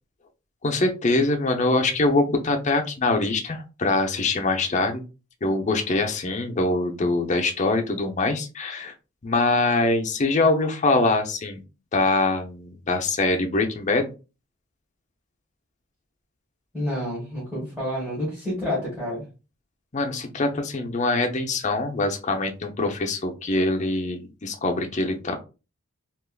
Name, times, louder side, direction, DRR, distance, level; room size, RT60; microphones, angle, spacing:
voice 1, 0.6-5.0 5.4-8.9 9.2-11.6 11.9-14.1 19.9-25.4, left 2 dB, 35° left, 4 dB, 0.6 m, -23 dB
voice 2, 16.7-19.2, left 1 dB, 5° right, -8 dB, 1.6 m, -29 dB
3.5 x 2.9 x 2.3 m, 0.30 s
head